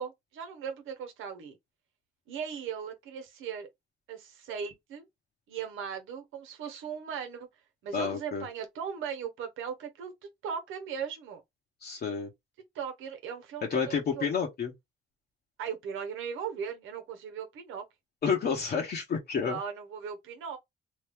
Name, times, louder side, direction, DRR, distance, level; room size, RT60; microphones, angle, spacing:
voice 1, 0.0-1.6 2.3-3.7 4.1-5.1 5.5-7.5 7.8-10.1 10.4-11.4 12.7-14.2 15.6-17.8 19.5-20.6, right 7 dB, 85° right, 1.0 m, -38 dB
voice 2, 7.9-8.5 11.8-12.3 13.7-14.7 18.2-19.6, left 6 dB, 55° left, 1.0 m, -30 dB
3.0 x 2.3 x 3.5 m
cardioid pair, 90°, 20 cm